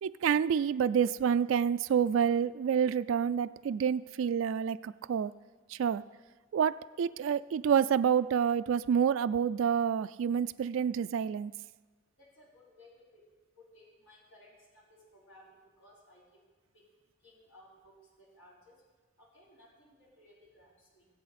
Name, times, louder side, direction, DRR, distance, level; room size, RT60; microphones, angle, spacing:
voice 1, 0.0-5.3 5.7-6.0 6.5-11.5, right 7 dB, 70° right, 13 dB, 0.3 m, -28 dB
voice 2, 12.2-13.3 13.6-16.4 16.7-16.9 17.2-18.8 19.2-21.1, left 1 dB, 70° left, -5 dB, 3.8 m, -59 dB
19.5 x 7.8 x 4.2 m, 1.3 s
head